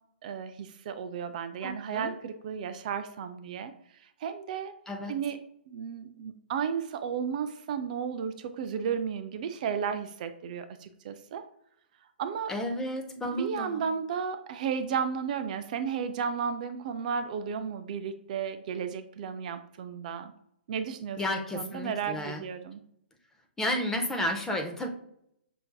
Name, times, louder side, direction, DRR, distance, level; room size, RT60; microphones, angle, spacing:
voice 1, 0.2-3.7 4.2-4.7 5.1-11.4 12.2-12.5 13.2-20.3 20.7-22.8, right 7 dB, 45° right, 9 dB, 0.3 m, -33 dB
voice 2, 1.6-2.1 4.9-5.1 12.5-13.9 21.2-22.4 23.6-24.9, left 1 dB, 5° left, 3 dB, 0.5 m, -32 dB
5.7 x 2.6 x 2.2 m, 0.73 s
hypercardioid pair, 135°, 6 cm